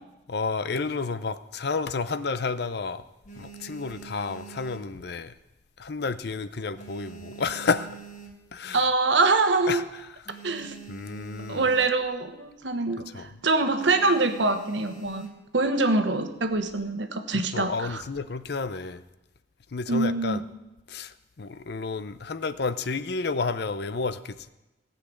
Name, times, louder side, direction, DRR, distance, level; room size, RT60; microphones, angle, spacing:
voice 1, 0.3-3.0 3.3-5.4 5.8-8.0 8.5-8.9 9.7-10.1 10.9-11.7 13.1-13.3 17.3-19.0 19.7-20.4 20.9-24.5, left 4 dB, 60° left, 13 dB, 0.6 m, -31 dB
sound 1, 3.1-5.6 5.9-6.2 6.5-8.8 9.2-9.3 9.5-9.6 10.0-12.2 12.5-12.7 13.0-13.3 13.8-15.6 16.3-16.9, right 7 dB, 45° left, 1.7 m, -45 dB
voice 2, 8.7-9.9 10.4-10.8 11.5-15.3 15.5-18.0 19.9-20.4, right 3 dB, 80° right, 8 dB, 1.2 m, -24 dB
16.5 x 5.9 x 8.5 m, 1.0 s
head